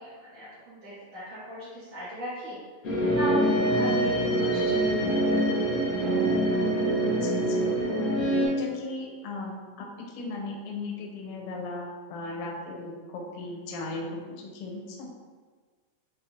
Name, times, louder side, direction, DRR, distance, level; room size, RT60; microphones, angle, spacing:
voice 1, 0.0-2.6 3.1-4.8, equal, 60° right, -14 dB, 2.4 m, -38 dB
sound 1, 2.8-8.5, right 1 dB, 50° left, 0.8 m, -25 dB
voice 2, 6.0-6.4 7.0-7.7 8.4-15.1, left 2 dB, 75° left, -1 dB, 1.4 m, -37 dB
6.8 x 2.7 x 2.6 m, 1.5 s
omnidirectional pair, 3.5 m